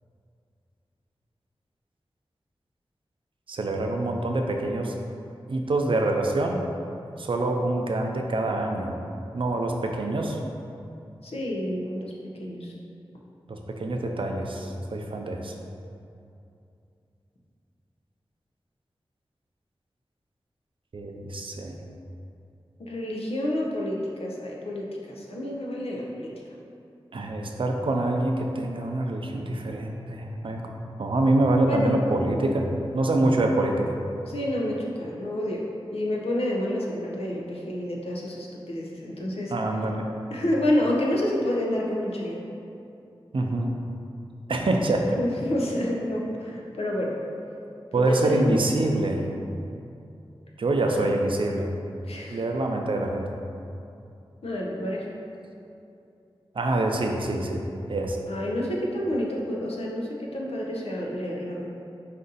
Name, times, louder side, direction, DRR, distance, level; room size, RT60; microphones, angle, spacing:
voice 1, 3.5-4.9 5.5-6.6 7.2-9.0 9.3-10.4 13.5-15.5 20.9-21.8 27.1-32.7 32.9-34.0 39.5-40.1 43.3-43.7 44.5-45.2 47.9-49.2 50.6-51.7 52.3-53.3 56.5-57.6 57.9-58.2, right 2 dB, 60° right, 2 dB, 0.4 m, -25 dB
voice 2, 11.2-12.1 12.4-12.7 22.8-26.3 31.6-32.0 34.2-35.6 35.9-39.5 40.3-42.4 45.2-47.2 47.9-48.6 50.8-51.1 52.1-52.4 54.4-55.2 58.3-61.7, left 1 dB, 85° left, -3 dB, 0.6 m, -29 dB
4.0 x 2.6 x 3.8 m, 2.6 s
cardioid pair, 40°, 10 cm